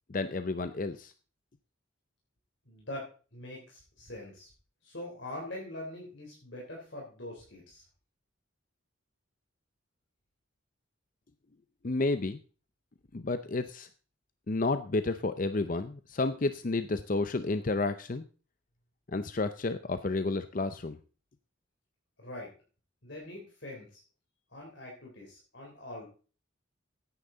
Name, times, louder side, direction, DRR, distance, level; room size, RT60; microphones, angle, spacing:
voice 1, 0.1-1.1 11.8-12.4 13.1-13.9 14.5-18.2 19.1-21.0, left 3 dB, 40° left, 11 dB, 0.6 m, -31 dB
voice 2, 2.7-4.5 4.8-7.8 22.2-22.5 23.0-24.0 24.5-26.0, left 1 dB, 65° left, -2 dB, 3.6 m, -43 dB
15.0 x 9.9 x 3.9 m, 0.37 s
head